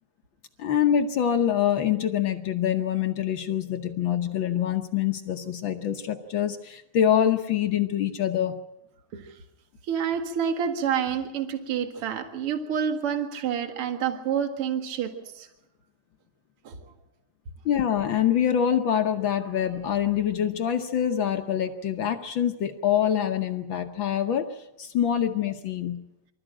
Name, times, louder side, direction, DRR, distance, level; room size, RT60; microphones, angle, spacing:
voice 1, 0.6-8.6 17.6-26.0, left 9 dB, 70° left, 7 dB, 1.1 m, -25 dB
voice 2, 9.9-15.5 16.6-16.8, right 8 dB, 50° right, 6 dB, 2.5 m, -28 dB
24.5 x 14.0 x 8.8 m, 0.92 s
omnidirectional pair, 3.4 m